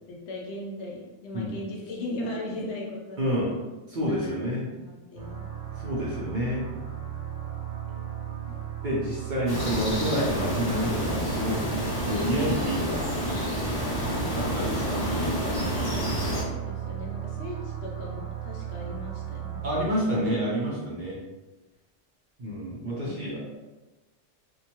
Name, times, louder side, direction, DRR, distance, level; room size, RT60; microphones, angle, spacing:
voice 1, 0.1-3.6 4.0-5.5 16.5-19.9 23.0-23.6, left 1 dB, 70° left, -2 dB, 0.9 m, -38 dB
voice 2, 3.2-3.5 3.9-4.6 5.8-6.6 8.8-11.8 12.1-13.0 14.3-15.3 19.6-21.2 22.4-23.4, equal, 50° right, -6 dB, 0.6 m, -28 dB
sound 1, 5.2-19.9, right 11 dB, 75° right, 0.9 m, -36 dB
sound 2, 9.5-16.4, equal, 35° left, 0.4 m, -29 dB
2.7 x 2.2 x 2.9 m, 1.1 s
omnidirectional pair, 1.2 m